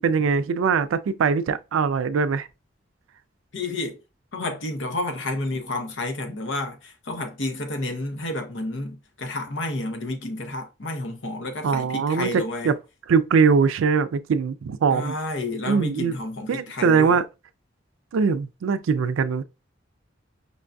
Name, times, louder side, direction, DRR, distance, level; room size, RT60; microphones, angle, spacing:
voice 1, 0.0-2.5 11.6-12.7 13.1-15.1 15.7-16.1 16.5-17.2 18.1-19.4, right 5 dB, 85° right, 0.4 m, -22 dB
voice 2, 3.5-4.0 4.3-12.7 14.9-17.2, left 2 dB, 70° left, 0.8 m, -30 dB
5.2 x 2.5 x 2.2 m
head